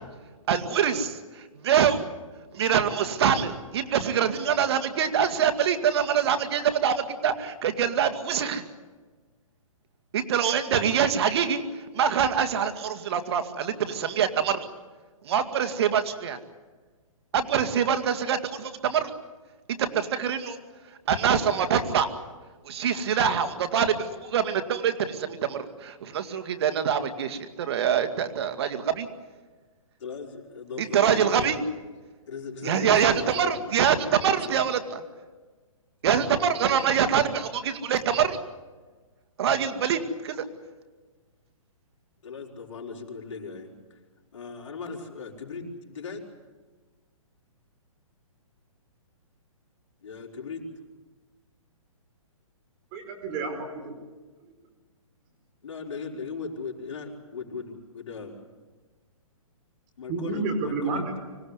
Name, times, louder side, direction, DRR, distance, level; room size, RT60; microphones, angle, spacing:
voice 1, 0.5-2.0 2.5-8.6 10.1-14.7 15.2-16.4 17.3-19.1 19.7-20.6 21.1-22.1 22.6-29.1 30.8-31.6 32.6-35.0 36.0-38.4 39.4-40.4, right 8 dB, 45° right, 8 dB, 2.2 m, -25 dB
voice 2, 30.0-31.5 32.3-33.5 34.3-34.6 36.7-36.8 42.2-44.0 44.3-46.2 50.0-50.7 55.6-58.4 60.0-61.0, left 5 dB, 60° left, 0 dB, 5.0 m, -38 dB
voice 3, 52.9-53.9 60.1-61.2, right 3 dB, 25° right, 5 dB, 4.9 m, -30 dB
25.5 x 17.0 x 9.7 m, 1.4 s
hypercardioid pair, 160°, 18 cm